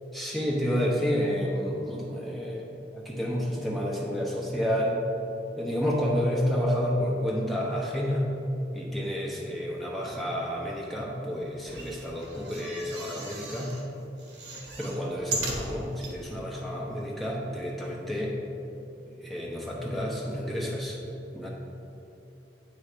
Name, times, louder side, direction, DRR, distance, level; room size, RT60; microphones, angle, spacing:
voice 1, 0.1-5.0 5.6-8.3 8.7-13.7 14.8-18.3 19.1-21.0 21.3-21.5, equal, ahead, -4 dB, 0.7 m, -30 dB
sound 1, 11.6-13.8 14.2-16.1 16.7-16.8 17.0-17.1, right 2 dB, 80° right, 1.1 m, -37 dB
9.0 x 3.2 x 5.0 m, 2.9 s
head